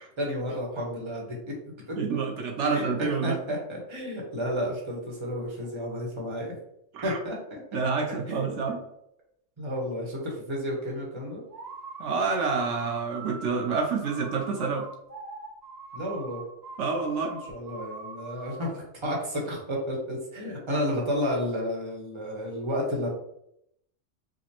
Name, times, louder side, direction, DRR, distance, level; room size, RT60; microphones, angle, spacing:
voice 1, 0.2-1.3 1.9-2.0 2.6-2.9 3.2-6.6 7.0-7.8 8.3-8.6 9.6-11.4 15.9-16.4 17.3-23.1, equal, 25° right, -2 dB, 1.0 m, -31 dB
voice 2, 2.0-3.4 6.9-7.2 7.7-8.8 12.0-14.9 16.8-17.3, right 4 dB, 80° right, 1 dB, 0.9 m, -28 dB
sound 1, 11.5-18.7, right 4 dB, 45° right, 0.6 m, -42 dB
4.9 x 2.1 x 2.8 m, 0.75 s
omnidirectional pair, 1.2 m